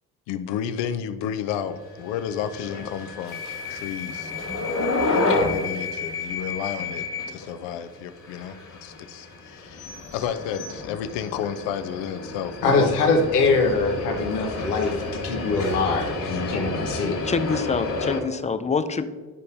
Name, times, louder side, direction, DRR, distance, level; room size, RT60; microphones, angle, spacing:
voice 1, 0.3-3.4 3.7-4.3 5.1-8.6 8.8-12.9 13.4-13.5, left 8 dB, 70° left, 11 dB, 0.7 m, -31 dB
sound 1, 1.9-18.2, left 3 dB, 40° left, 1.8 m, -30 dB
voice 2, 12.6-17.2, left 3 dB, 85° left, 3 dB, 1.1 m, -23 dB
voice 3, 17.2-19.1, left 5 dB, 15° left, 11 dB, 0.4 m, -25 dB
9.9 x 5.2 x 2.7 m, 1.4 s
hypercardioid pair, 50°, 45 cm